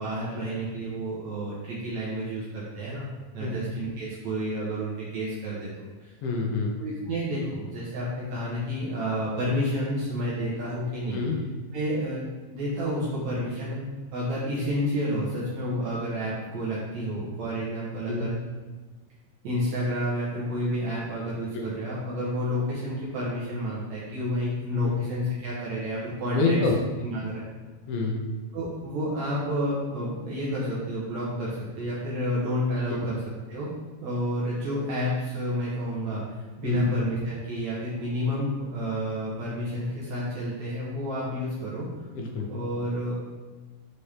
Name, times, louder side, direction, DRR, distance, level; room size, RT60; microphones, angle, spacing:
voice 1, 0.0-3.1 3.3-6.1 6.8-11.2 11.7-12.2 12.5-13.9 14.1-18.3 19.4-26.6 27.0-27.4 28.5-33.2 33.5-33.7 34.0-41.9 42.5-43.1, equal, 65° right, -7 dB, 2.0 m, -30 dB
voice 2, 6.2-6.7 11.1-11.4 18.1-18.3 21.5-21.7 24.8-25.0 26.3-26.8 27.9-28.2 36.6-36.9 42.2-42.5, left 3 dB, 80° left, 0 dB, 2.6 m, -27 dB
6.6 x 4.2 x 3.5 m, 1.3 s
omnidirectional pair, 4.2 m